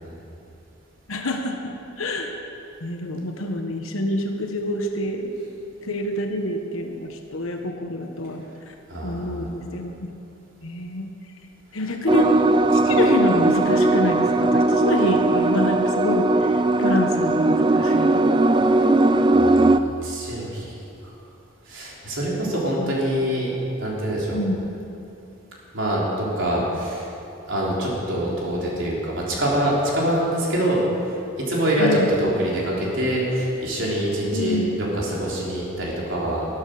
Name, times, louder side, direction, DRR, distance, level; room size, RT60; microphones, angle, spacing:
voice 1, 1.1-2.3 2.8-5.3 5.8-8.4 9.0-10.1 10.6-11.1 11.7-12.4 12.7-18.3 19.2-19.3 22.8-22.9 24.3-24.6 31.8-32.1 34.3-34.7, left 1 dB, 85° left, 3 dB, 1.2 m, -27 dB
voice 2, 8.9-9.6 19.3-20.7 21.0-21.1 21.7-24.4 25.7-27.1 27.5-36.5, right 1 dB, 70° right, -4 dB, 3.5 m, -25 dB
sound 1, 12.1-19.8, right 2 dB, 20° right, 0.3 m, -18 dB
14.5 x 12.5 x 6.6 m, 2.7 s
head